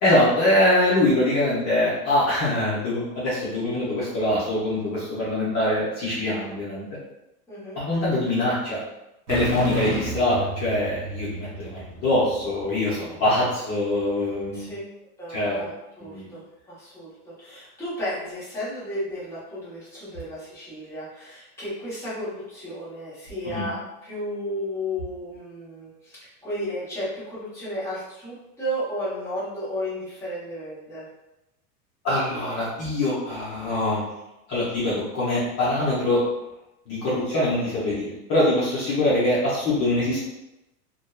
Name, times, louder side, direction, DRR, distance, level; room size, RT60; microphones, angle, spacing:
voice 1, 0.0-6.9 7.8-8.8 9.3-14.7 15.3-15.6 16.0-16.3 23.5-23.7 32.0-34.0 34.5-36.2 36.9-40.2, left 1 dB, 35° left, -8 dB, 0.8 m, -23 dB
voice 2, 7.5-7.8 14.5-14.8 15.2-15.7 16.0-31.0, equal, 5° left, -11 dB, 0.9 m, -33 dB
sound 1, 9.3-13.0, equal, 85° right, 0.8 m, -30 dB
2.6 x 2.2 x 2.3 m, 0.92 s
supercardioid pair, 140°, 45 cm